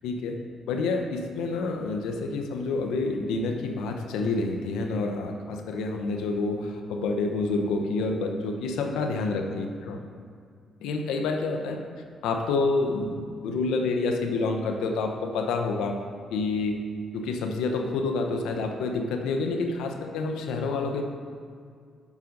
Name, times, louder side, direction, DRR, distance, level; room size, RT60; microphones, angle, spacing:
voice 1, 0.0-0.4 0.7-10.0 10.8-11.8 12.2-16.0 16.3-16.8 17.1-21.0, left 3 dB, 90° left, 4 dB, 0.8 m, -28 dB
7.3 x 5.3 x 6.5 m, 2.2 s
cardioid pair, 90°, 0 cm